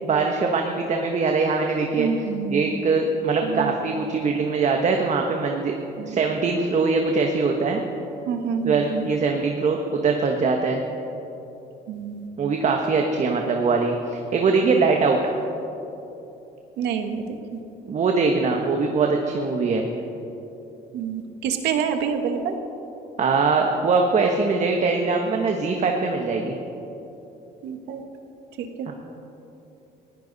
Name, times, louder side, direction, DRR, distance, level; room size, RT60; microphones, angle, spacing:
voice 1, 0.0-2.1 2.5-5.7 6.0-7.8 8.6-10.8 12.4-15.3 17.9-19.9 23.2-26.6 28.9-29.0, right 4 dB, 45° right, 2 dB, 1.4 m, -22 dB
voice 2, 2.0-2.7 3.4-3.8 6.0-6.2 8.3-9.1 11.9-12.3 16.8-17.6 20.9-22.6 27.6-28.0 28.6-28.9, right 6 dB, 85° right, 6 dB, 1.6 m, -28 dB
20.0 x 16.0 x 4.1 m, 3.0 s
cardioid pair, 110°, 17 cm